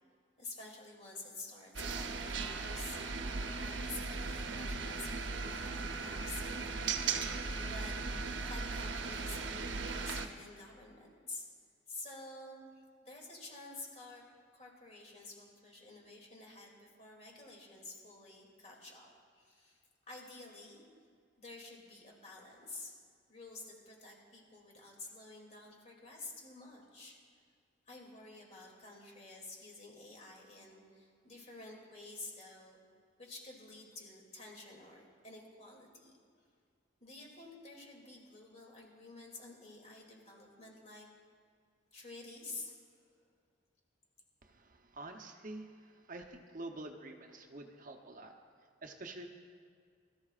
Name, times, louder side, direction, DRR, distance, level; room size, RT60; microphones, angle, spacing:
voice 1, 0.4-3.0 3.6-6.8 7.6-8.0 8.5-11.5 11.9-14.3 14.5-19.1 19.4-20.8 21.4-22.9 23.3-27.2 27.9-32.8 33.2-36.1 37.0-41.1 41.9-42.8, left 2 dB, 35° left, -1 dB, 2.6 m, -50 dB
sound 1, 1.7-10.3, right 4 dB, 75° right, 0.8 m, -37 dB
voice 2, 44.4-48.4 48.8-49.3, right 2 dB, 45° right, 4 dB, 0.8 m, -47 dB
22.0 x 13.5 x 2.5 m, 2.1 s
head